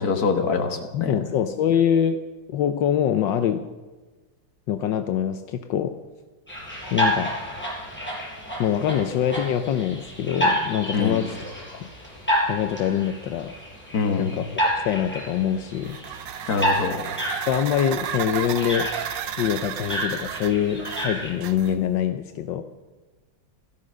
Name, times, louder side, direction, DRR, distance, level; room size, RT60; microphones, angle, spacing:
voice 1, 0.0-1.2 10.9-11.2 13.9-14.4 16.5-17.1, left 5 dB, 55° left, 4 dB, 2.1 m, -24 dB
voice 2, 0.9-2.2 2.5-3.7 4.7-6.0 6.9-7.3 8.6-11.4 11.8-11.9 12.5-13.5 14.2-16.0 17.5-18.9 19.4-22.6, left 9 dB, 85° left, 8 dB, 1.4 m, -24 dB
sound 1, 6.5-21.3, equal, 5° left, 5.9 m, -30 dB
sound 2, 15.8-22.0, right 11 dB, 90° right, 1.4 m, -33 dB
16.5 x 13.5 x 6.3 m, 1.2 s
omnidirectional pair, 1.9 m